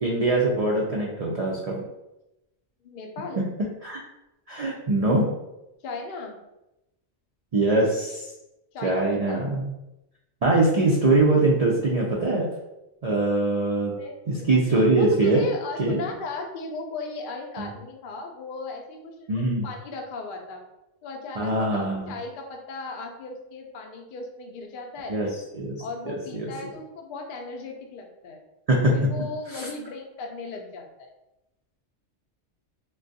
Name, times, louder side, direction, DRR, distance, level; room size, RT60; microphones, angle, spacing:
voice 1, 0.0-1.8 3.4-3.5 3.8-4.0 4.5-5.2 7.5-8.2 8.8-9.7 10.4-12.5 13.0-13.9 14.3-15.4 15.8-16.0 17.6-17.7 19.3-19.7 21.4-22.1 25.1-25.3 25.5-26.5 28.7-29.0 29.5-29.7, right 2 dB, 75° right, -3 dB, 0.3 m, -22 dB
voice 2, 2.8-3.4 5.8-6.4 8.7-9.5 14.0-14.5 14.9-20.6 21.0-25.2 25.8-28.4 28.9-31.1, left 3 dB, 60° left, 2 dB, 0.6 m, -37 dB
3.4 x 2.2 x 2.6 m, 0.93 s
omnidirectional pair, 1.2 m